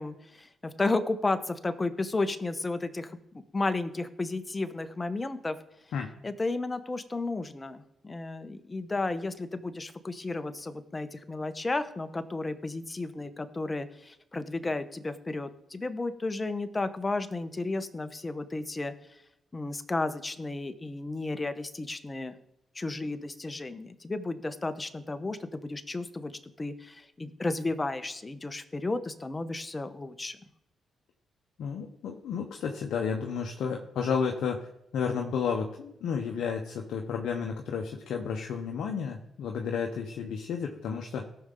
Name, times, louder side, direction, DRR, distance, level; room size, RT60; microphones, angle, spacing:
voice 1, 0.0-5.6 6.2-18.9 19.5-22.4 22.7-26.3 26.6-30.4, left 2 dB, 30° left, 10 dB, 1.3 m, -33 dB
voice 2, 31.6-41.3, left 6 dB, 70° left, 2 dB, 1.0 m, -32 dB
17.5 x 7.0 x 3.9 m, 0.80 s
hypercardioid pair, 45°, 0 cm